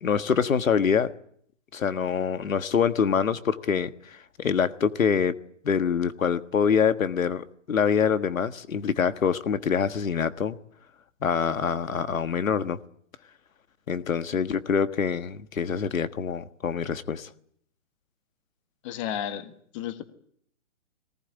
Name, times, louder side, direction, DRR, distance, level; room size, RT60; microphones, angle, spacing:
voice 1, 0.0-1.1 1.7-10.6 11.2-12.8 13.9-17.3, left 6 dB, 90° left, 1.6 m, -25 dB
voice 2, 18.8-20.0, left 10 dB, 25° left, 1.5 m, -33 dB
22.0 x 19.5 x 10.0 m
hypercardioid pair, 160°, 39 cm